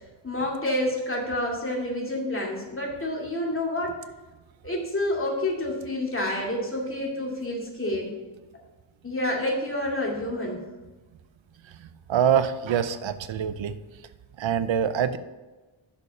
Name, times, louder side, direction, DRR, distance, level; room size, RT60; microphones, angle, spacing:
voice 1, 0.2-4.0 4.6-8.1 9.0-10.6, left 1 dB, 25° left, -2 dB, 2.3 m, -28 dB
voice 2, 12.1-13.7 14.4-15.2, right 8 dB, 75° right, 12 dB, 0.7 m, -24 dB
6.6 x 5.2 x 6.5 m, 1.2 s
cardioid pair, 75°, 46 cm